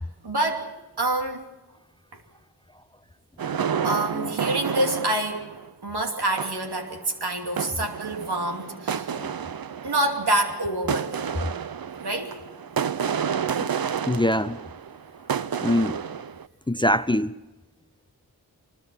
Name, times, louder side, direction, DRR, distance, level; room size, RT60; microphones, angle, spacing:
voice 1, 0.2-0.7 1.0-1.4 2.1-2.2 3.8-5.5 5.8-9.1 9.8-11.3 12.0-12.4, right 1 dB, 85° right, 2.8 m, -27 dB
sound 1, 3.4-5.7 6.2-7.0 7.6-16.5, right 7 dB, 65° right, 0.7 m, -30 dB
voice 2, 14.1-14.6 15.6-16.0 16.7-17.3, left 1 dB, 15° left, 0.6 m, -23 dB
24.0 x 21.0 x 5.8 m
wide cardioid pair, 45°, 38 cm